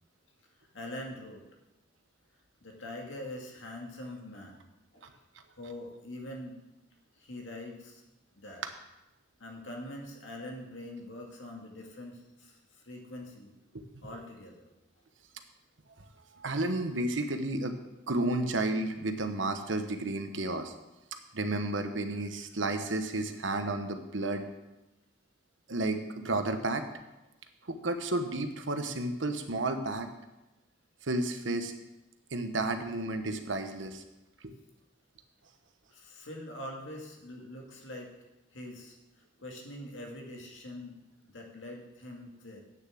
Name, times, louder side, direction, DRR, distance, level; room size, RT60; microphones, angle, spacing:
voice 1, 0.7-1.4 2.6-4.7 4.9-5.1 5.6-6.6 7.2-8.0 8.4-8.6 9.4-13.5 14.0-14.7 35.9-38.1 38.5-41.0 41.3-42.6, left 1 dB, 90° left, 0 dB, 2.3 m, -44 dB
voice 2, 16.4-17.8 18.1-20.7 21.3-24.4 25.7-26.9 27.7-30.1 31.0-31.7 32.3-34.0 34.4-34.5, right 2 dB, 85° right, 7 dB, 1.1 m, -32 dB
9.0 x 6.9 x 7.6 m, 0.98 s
head